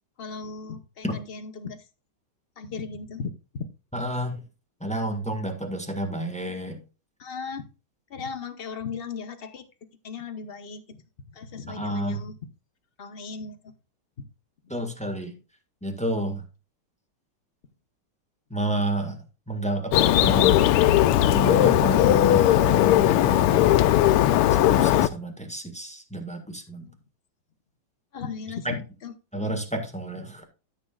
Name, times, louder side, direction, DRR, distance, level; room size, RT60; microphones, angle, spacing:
voice 1, 0.2-1.9 2.6-3.6 7.2-7.7 8.1-9.7 10.0-11.0 11.3-12.4 13.0-13.7 14.2-14.3 26.9-27.0 28.1-29.1, left 5 dB, 60° left, 7 dB, 0.6 m, -37 dB
voice 2, 3.9-4.4 4.8-6.8 11.7-12.2 14.7-15.3 15.8-16.4 18.5-19.2 19.5-20.7 21.3-23.8 24.6-26.9 28.6-28.7 29.3-30.4, right 1 dB, 5° left, 4 dB, 1.2 m, -30 dB
Bird, 19.9-25.1, left 13 dB, 90° left, 1.5 m, -18 dB
13.5 x 6.8 x 2.4 m, 0.32 s
omnidirectional pair, 2.4 m